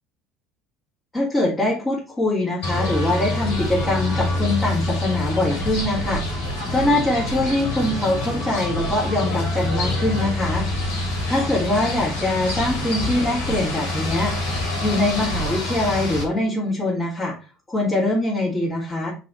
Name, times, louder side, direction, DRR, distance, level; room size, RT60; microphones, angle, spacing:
voice 1, 1.1-6.2 6.7-10.6 11.3-14.5 14.8-17.3 17.7-19.1, left 2 dB, 20° left, -7 dB, 3.3 m, -23 dB
sound 1, 2.6-16.2, left 1 dB, 70° left, 3.1 m, -26 dB
5.4 x 4.3 x 4.4 m, 0.33 s
hypercardioid pair, 65°, 0 cm